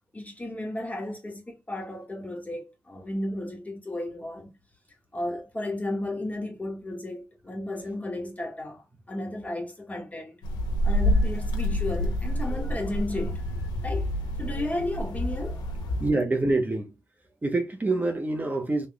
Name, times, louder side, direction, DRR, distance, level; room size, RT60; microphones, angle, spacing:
voice 1, 0.1-4.6 5.1-10.4 10.8-14.1 14.4-16.0, left 1 dB, 20° left, 1.8 m, -34 dB
sound 1, 10.4-16.1, left 1 dB, 85° left, 0.9 m, -28 dB
voice 2, 16.0-16.9 17.4-18.9, right 2 dB, 25° right, 1.1 m, -26 dB
3.5 x 3.2 x 2.4 m
supercardioid pair, 55°, 7 cm